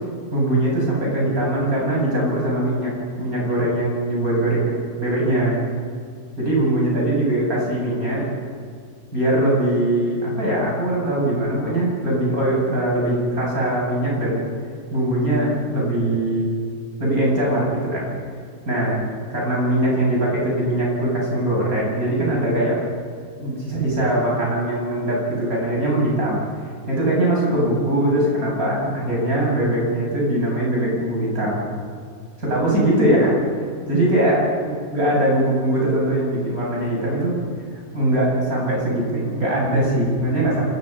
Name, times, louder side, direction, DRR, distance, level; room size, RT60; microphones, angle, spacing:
voice 1, 0.3-2.9 3.2-4.7 5.0-5.7 6.4-8.3 9.1-14.5 14.9-16.5 17.0-18.1 18.6-19.0 19.3-22.8 23.4-26.4 26.9-31.7 32.4-33.3 33.8-34.5 34.9-37.4 37.7-40.6, right 1 dB, 65° right, -4 dB, 8.3 m, -21 dB
28.0 x 21.0 x 5.7 m, 2.2 s
omnidirectional pair, 1.7 m